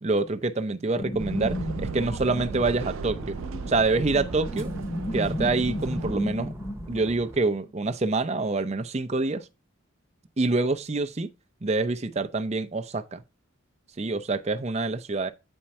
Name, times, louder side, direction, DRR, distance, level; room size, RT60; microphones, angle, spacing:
voice 1, 0.0-3.4 3.7-4.7 5.1-6.5 6.9-9.5 10.4-11.3 11.6-13.2 14.0-15.3, right 3 dB, 35° right, 0.6 m, -26 dB
sound 1, 1.0-7.7, left 1 dB, 25° left, 0.6 m, -34 dB
sound 2, 1.2-6.2, right 5 dB, 85° right, 0.4 m, -37 dB
sound 3, 1.3-7.4, right 1 dB, 15° right, 1.0 m, -44 dB
8.8 x 4.5 x 4.2 m
head